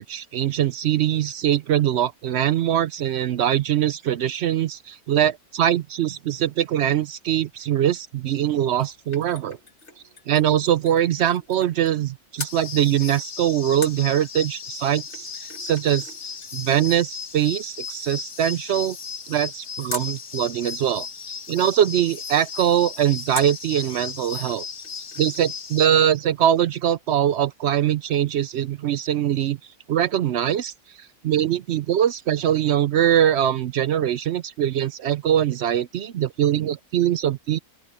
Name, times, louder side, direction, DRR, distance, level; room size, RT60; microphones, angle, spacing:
voice 1, 0.0-9.6 10.3-16.1 16.5-19.0 19.3-24.6 25.2-29.6 29.9-37.6, right 10 dB, 65° right, 0.6 m, -22 dB
sound 1, 8.4-12.1 12.4-12.6 13.8-20.2 23.3-23.7 24.2-24.3 24.5-25.5 25.7-25.8, left 4 dB, 45° left, 2.3 m, -41 dB
sound 2, 12.5-25.9, left 6 dB, 85° left, 2.2 m, -36 dB
open air
omnidirectional pair, 1.6 m